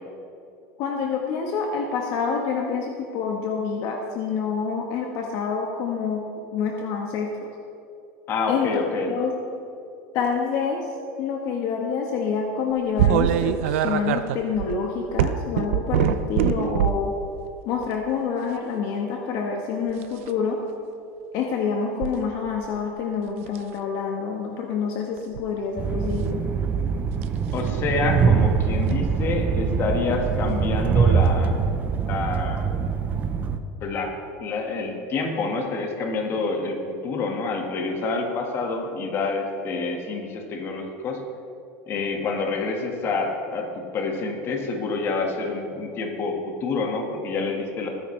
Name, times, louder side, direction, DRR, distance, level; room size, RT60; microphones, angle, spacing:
voice 1, 0.8-6.2 6.5-7.3 8.5-8.8 9.1-9.3 10.1-10.8 11.2-17.1 17.6-20.6 21.3-26.4, left 6 dB, 55° left, 1 dB, 1.3 m, -27 dB
voice 2, 8.3-9.1 27.5-31.5 32.1-32.7 33.8-34.1 34.4-41.2 41.9-47.9, left 3 dB, 35° left, 2 dB, 1.7 m, -27 dB
sound 1, 13.0-17.1 17.8-18.1 19.9-20.3 22.0-22.1 22.6-23.0 23.5-23.7 25.2-25.5 27.2-27.4 28.9-29.0 30.5-30.6 31.2-31.3, right 10 dB, 85° right, 0.6 m, -24 dB
Train, 25.8-33.6, right 6 dB, 25° right, 0.6 m, -23 dB
21.5 x 10.0 x 3.3 m, 2.6 s
supercardioid pair, 150°, 7 cm